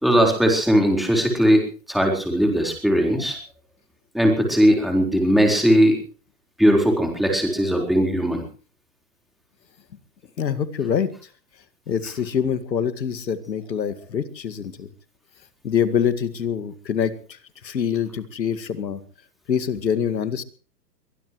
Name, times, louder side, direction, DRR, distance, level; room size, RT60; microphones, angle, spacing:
voice 1, 0.0-3.4 4.1-6.0 6.6-8.4, equal, ahead, 2 dB, 4.2 m, -19 dB
voice 2, 10.4-11.1 11.9-14.9 15.6-19.0 19.5-20.4, left 8 dB, 90° left, 13 dB, 2.1 m, -25 dB
23.0 x 19.0 x 3.2 m, 0.40 s
hypercardioid pair, 140°, 49 cm